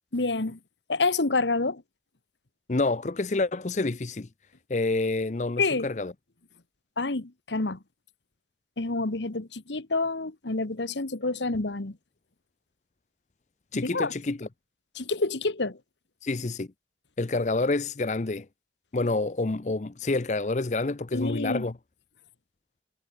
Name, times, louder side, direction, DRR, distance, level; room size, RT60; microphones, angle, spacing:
voice 1, 0.1-0.6 0.9-1.8 5.6-5.9 7.0-7.8 8.8-12.0 13.8-14.1 14.9-15.8 21.1-21.6, left 3 dB, 85° left, 1.5 m, -28 dB
voice 2, 2.7-4.3 4.7-6.1 13.7-14.5 16.2-16.7 17.2-18.5 18.9-21.7, left 2 dB, 40° left, 0.6 m, -28 dB
head